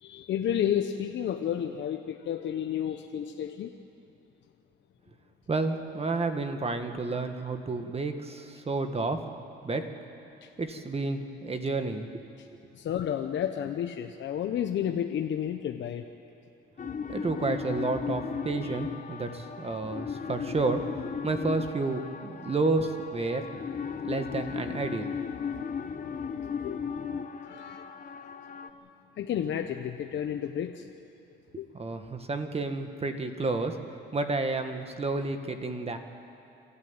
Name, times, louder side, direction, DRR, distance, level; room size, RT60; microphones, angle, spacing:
voice 1, 0.0-3.7 10.4-10.5 12.4-12.5 12.7-16.0 18.6-18.8 26.6-26.8 27.5-27.9 29.2-30.9 31.6-31.7, left 9 dB, 70° left, 5 dB, 1.0 m, -31 dB
voice 2, 5.5-9.2 9.6-9.9 10.6-12.1 17.1-20.8 21.2-23.5 24.0-25.1 31.7-33.8 34.1-36.0, right 3 dB, 30° right, 7 dB, 1.8 m, -30 dB
sound 1, 16.8-28.7, left 6 dB, 40° left, 1.2 m, -36 dB
28.0 x 13.0 x 9.0 m, 2.6 s
cardioid pair, 90°, 20 cm